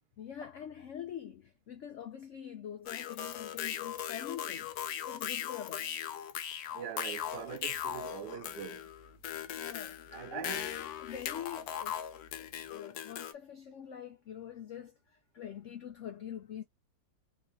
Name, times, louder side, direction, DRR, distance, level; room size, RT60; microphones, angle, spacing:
voice 1, 0.2-4.7 5.1-5.9 9.5-12.1 12.3-16.6, left 9 dB, 85° left, 0.6 m, -45 dB
sound 1, 2.9-13.3, left 10 dB, 70° left, 1.0 m, -39 dB
voice 2, 6.7-8.9 10.1-10.7, right 10 dB, 75° right, 1.3 m, -43 dB
sound 2, 7.2-12.8, equal, ahead, 0.7 m, -63 dB
4.0 x 2.8 x 2.7 m
omnidirectional pair, 1.9 m